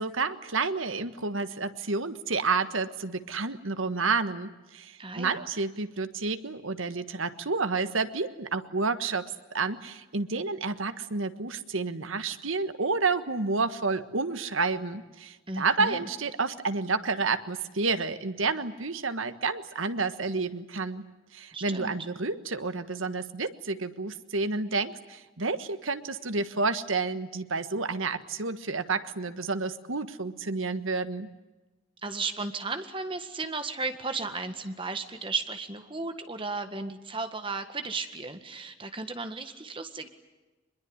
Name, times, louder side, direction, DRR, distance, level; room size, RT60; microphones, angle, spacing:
voice 1, 0.0-9.3 9.5-21.0 21.3-31.3, right 4 dB, 85° right, 11 dB, 1.5 m, -30 dB
voice 2, 5.0-5.5 15.5-16.1 21.5-22.0 32.0-40.1, right 3 dB, 25° right, 8 dB, 1.7 m, -35 dB
24.0 x 22.0 x 9.7 m, 1.1 s
head